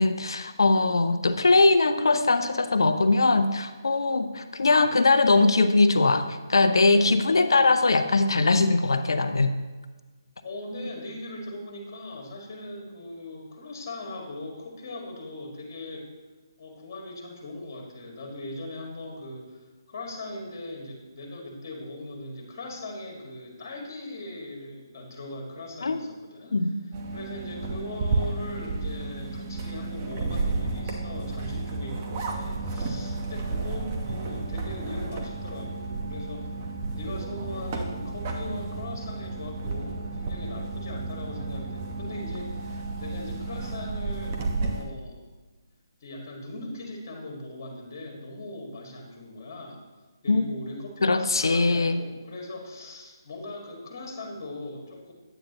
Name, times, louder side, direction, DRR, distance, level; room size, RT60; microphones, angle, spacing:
voice 1, 0.0-6.2 6.5-9.5 25.8-26.0 26.5-26.8 50.3-50.5 51.0-52.0, left 3 dB, 75° left, 9 dB, 0.6 m, -21 dB
voice 2, 10.4-16.1 16.6-26.7 27.1-36.5 36.9-45.2 46.0-49.8 50.2-55.1, left 2 dB, 40° left, 0 dB, 1.9 m, -39 dB
sound 1, 26.9-44.8, right 3 dB, 30° right, 1.0 m, -32 dB
9.0 x 8.6 x 3.0 m, 1.3 s
figure-of-eight pair, 155°, 2 cm